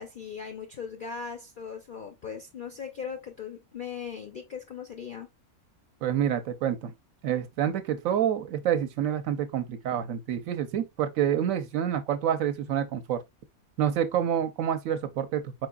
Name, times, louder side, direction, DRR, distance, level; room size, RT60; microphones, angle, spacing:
voice 1, 0.0-5.3, left 6 dB, 65° left, 0.5 m, -39 dB
voice 2, 6.0-6.9 7.2-13.2 13.8-15.7, right 9 dB, 70° right, 1.0 m, -28 dB
4.8 x 3.9 x 2.2 m
omnidirectional pair, 1.5 m